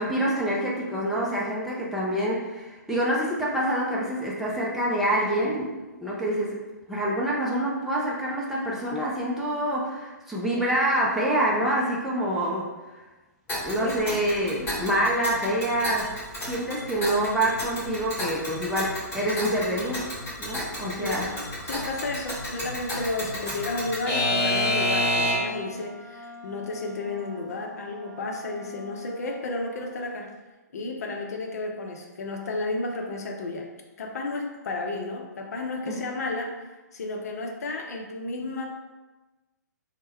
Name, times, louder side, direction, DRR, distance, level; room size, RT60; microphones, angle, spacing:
voice 1, 0.0-5.7 6.0-6.6 6.9-12.7 13.0-13.1 13.6-16.1 16.4-20.1 20.4-21.3 35.9-36.0, right 1 dB, ahead, -6 dB, 0.5 m, -26 dB
Alarm / Clock, 13.5-25.6, left 1 dB, 15° left, 1.4 m, -30 dB
voice 2, 13.8-14.8 21.0-30.3 30.7-33.7 34.0-36.5 36.9-38.6, left 2 dB, 60° left, 1 dB, 0.6 m, -32 dB
Wind instrument woodwind instrument, 24.1-30.1, left 1 dB, 80° right, 0.7 m, -44 dB
3.3 x 2.1 x 4.2 m, 1.2 s
figure-of-eight pair, 125°, 10 cm